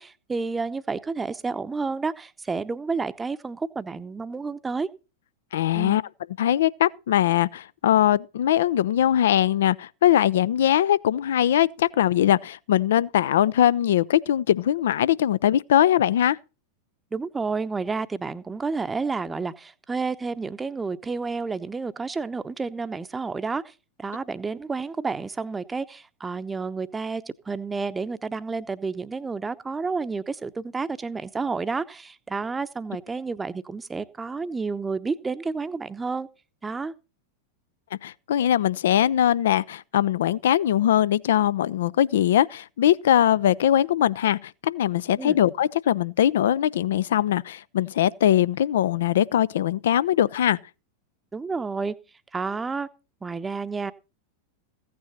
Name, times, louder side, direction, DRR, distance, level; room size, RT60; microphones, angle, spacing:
voice 1, 0.0-4.9 5.7-6.0 17.1-23.7 24.0-36.3 36.6-36.9 45.2-45.4 51.3-51.9 52.3-52.9 53.2-53.9, right 4 dB, 15° right, 0.8 m, -30 dB
voice 2, 5.5-6.0 6.4-16.4 38.0-50.6, left 11 dB, 60° left, 0.5 m, -21 dB
15.5 x 9.5 x 4.2 m
figure-of-eight pair, 90°, 0 cm